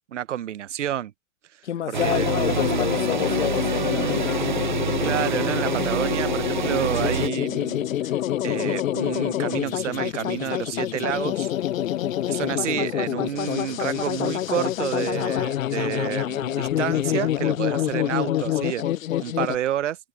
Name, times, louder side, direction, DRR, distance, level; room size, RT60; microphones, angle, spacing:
voice 1, 0.1-1.1 1.9-2.3 5.0-8.1 8.4-11.5 12.3-20.0, right 11 dB, 60° right, 0.9 m, -29 dB
voice 2, 1.6-4.6 11.9-12.3, left 10 dB, 60° left, 1.4 m, -30 dB
sound 1, 1.9-7.3, right 7 dB, 40° right, 0.4 m, -27 dB
sound 2, 2.0-19.6, left 12 dB, 80° left, 0.7 m, -26 dB
hypercardioid pair, 180°, 40 cm